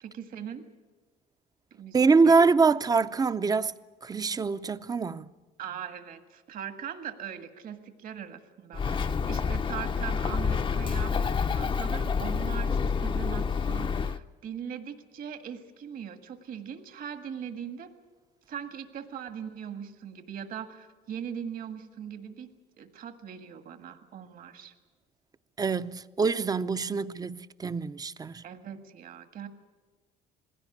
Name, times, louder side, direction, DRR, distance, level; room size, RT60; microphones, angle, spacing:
voice 1, 0.0-0.6 1.7-2.4 5.6-17.9 18.5-22.5 22.8-24.7 28.4-29.5, right 8 dB, 55° right, 1.7 m, -40 dB
voice 2, 1.9-3.8 4.0-5.3 25.6-28.4, right 4 dB, 20° right, 0.6 m, -24 dB
Bird, 8.7-14.2, left 5 dB, 30° left, 0.6 m, -28 dB
20.5 x 16.5 x 9.8 m
cardioid pair, 110°, 17 cm